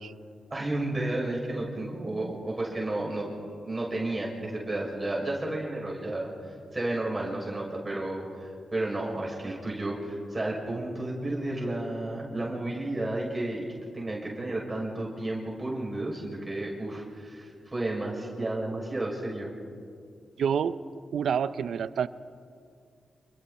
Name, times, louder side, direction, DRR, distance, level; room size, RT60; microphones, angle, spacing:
voice 1, 0.5-3.3 3.6-6.3 6.7-13.7 13.9-19.5, right 2 dB, 30° right, -3 dB, 6.6 m, -32 dB
voice 2, 20.4-20.8 21.1-22.1, right 7 dB, 75° right, 15 dB, 0.6 m, -27 dB
29.0 x 22.5 x 4.3 m, 2.3 s
cardioid pair, 55°, 0 cm